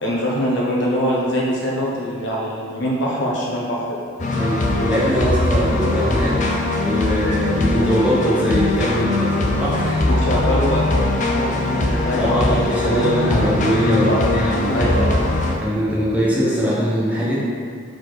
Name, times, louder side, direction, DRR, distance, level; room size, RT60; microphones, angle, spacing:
voice 1, 0.0-4.0 10.1-13.3 14.0-14.4 14.7-15.2, equal, 60° left, -5 dB, 1.1 m, -23 dB
sound 1, 4.2-15.6, left 2 dB, 35° left, 0.6 m, -21 dB
voice 2, 4.3-6.4 6.7-10.0 12.2-15.1 15.6-17.4, equal, 5° right, -8 dB, 1.1 m, -21 dB
4.8 x 4.4 x 4.5 m, 2.2 s
head